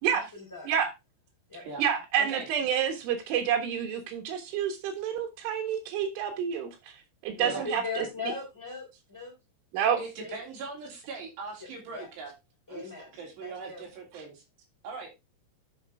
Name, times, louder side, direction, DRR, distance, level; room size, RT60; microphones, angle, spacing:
voice 1, 0.1-0.7 1.5-1.6 7.3-9.3 9.8-9.9 10.2-10.4 11.9-12.1 12.7-13.9, left 3 dB, 5° left, -2 dB, 3.3 m, -39 dB
voice 2, 1.8-6.9 7.2-8.1 9.7-10.0, right 8 dB, 90° right, 2 dB, 3.9 m, -28 dB
voice 3, 10.0-12.3 12.7-14.4 14.8-15.1, right 4 dB, 65° right, -1 dB, 5.5 m, -40 dB
10.5 x 6.1 x 3.5 m, 0.24 s
omnidirectional pair, 5.4 m